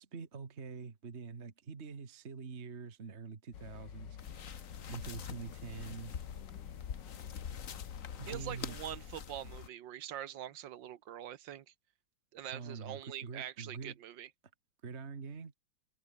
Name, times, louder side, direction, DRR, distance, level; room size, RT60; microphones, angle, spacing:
voice 1, 0.0-4.2 4.9-6.2 8.2-8.8 9.4-9.6 12.5-14.0 14.8-15.5, right 5 dB, 35° right, 1.9 m, -45 dB
sound 1, 3.5-8.6, left 9 dB, 70° left, 2.0 m, -49 dB
sound 2, 4.2-9.7, left 7 dB, 50° left, 1.5 m, -45 dB
voice 2, 8.2-11.6 12.3-14.3, right 11 dB, 75° right, 1.7 m, -44 dB
omnidirectional pair, 2.0 m